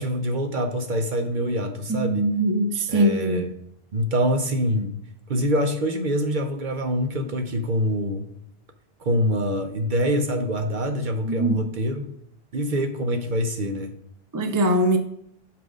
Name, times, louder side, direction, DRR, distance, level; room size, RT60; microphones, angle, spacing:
voice 1, 0.0-2.3 2.9-3.5 3.9-5.0 5.3-8.3 9.0-12.1 12.5-13.9, equal, 55° right, 0.8 m, -25 dB
voice 2, 1.9-3.5 11.2-11.7 14.3-15.0, right 1 dB, 25° right, 0.5 m, -22 dB
5.8 x 5.0 x 6.2 m
omnidirectional pair, 1.0 m